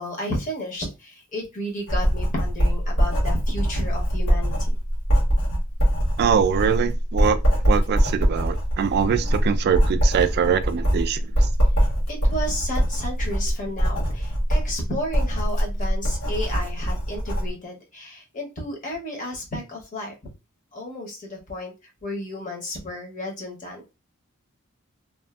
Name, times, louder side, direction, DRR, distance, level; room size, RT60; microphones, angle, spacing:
voice 1, 0.0-4.8 11.8-20.1 20.7-21.7 22.0-23.8, left 1 dB, 40° left, 0.9 m, -32 dB
Writing, 1.9-17.5, equal, 75° left, 1.3 m, -22 dB
voice 2, 6.2-7.4 7.7-11.2, right 7 dB, 50° right, 0.3 m, -23 dB
2.6 x 2.5 x 2.3 m
head